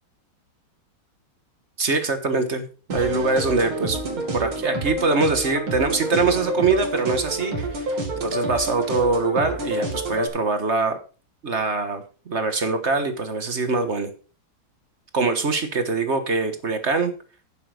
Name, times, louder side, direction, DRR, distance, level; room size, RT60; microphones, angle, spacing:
voice 1, 1.8-7.9 8.2-11.0 11.4-14.1 15.1-17.1, right 3 dB, 40° right, 8 dB, 1.3 m, -23 dB
sound 1, 2.9-10.3, right 2 dB, 80° right, 3.2 m, -28 dB
9.5 x 7.9 x 5.0 m, 0.36 s
omnidirectional pair, 2.3 m